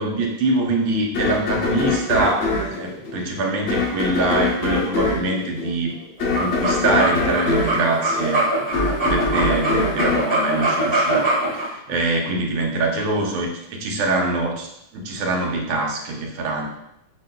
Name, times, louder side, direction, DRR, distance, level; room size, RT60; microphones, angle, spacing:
voice 1, 0.0-6.0 6.4-8.5 9.0-16.7, right 2 dB, 85° right, 1 dB, 1.6 m, -24 dB
sound 1, 1.1-11.4, left 3 dB, 85° left, 0.6 m, -24 dB
sound 2, 6.2-11.7, right 2 dB, 15° right, 1.2 m, -22 dB
7.3 x 2.9 x 2.2 m, 0.78 s
omnidirectional pair, 2.2 m